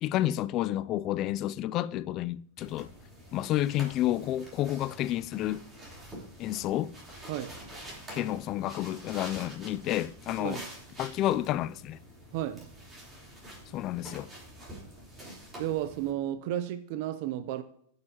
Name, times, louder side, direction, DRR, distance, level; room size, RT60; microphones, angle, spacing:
voice 1, 0.0-2.9 3.3-5.6 6.4-6.9 8.1-10.6 11.0-12.0 13.7-14.3, left 13 dB, 40° left, 0.4 m, -30 dB
sound 1, 2.6-16.1, right 1 dB, 15° right, 3.6 m, -47 dB
voice 2, 12.3-12.6 15.6-17.6, right 12 dB, 55° right, 0.5 m, -33 dB
15.0 x 6.7 x 2.9 m
supercardioid pair, 135°, 0 cm